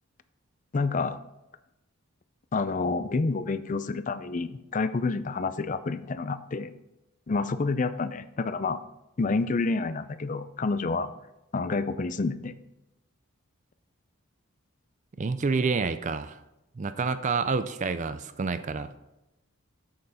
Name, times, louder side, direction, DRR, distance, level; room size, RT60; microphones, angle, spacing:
voice 1, 0.7-1.2 2.5-6.7 7.3-8.8 9.2-11.1 11.5-12.6, left 3 dB, 35° left, 13 dB, 0.4 m, -28 dB
voice 2, 15.2-16.4 16.8-19.0, right 4 dB, 35° right, 12 dB, 0.4 m, -28 dB
7.8 x 7.7 x 4.1 m, 0.94 s
head